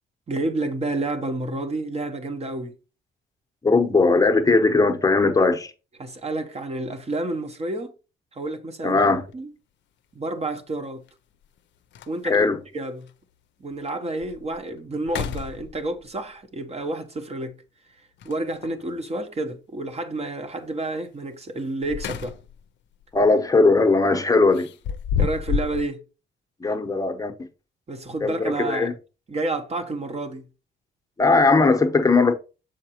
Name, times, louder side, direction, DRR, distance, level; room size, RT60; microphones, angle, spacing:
voice 1, 0.3-2.7 6.0-7.9 8.4-9.0 9.3-9.5 10.1-11.0 12.1-12.5 12.7-13.1 13.6-17.5 18.2-22.3 25.2-26.0 27.9-28.9 29.3-30.4, right 2 dB, 30° right, 1.0 m, -29 dB
voice 2, 3.6-5.7 8.8-9.2 12.2-12.6 23.1-24.7 26.6-27.5 28.2-28.9 31.2-32.3, left 3 dB, 15° left, 0.9 m, -19 dB
sound 1, 9.2-9.3 11.1-11.2 11.6-11.7 11.9-12.5 13.1-13.2 13.7-13.8 14.2-14.6 15.0-16.1 18.2-18.8 21.6-22.6 23.0-23.2 24.5-25.9, left 7 dB, 65° left, 0.5 m, -30 dB
6.6 x 4.9 x 2.9 m
cardioid pair, 90°, 20 cm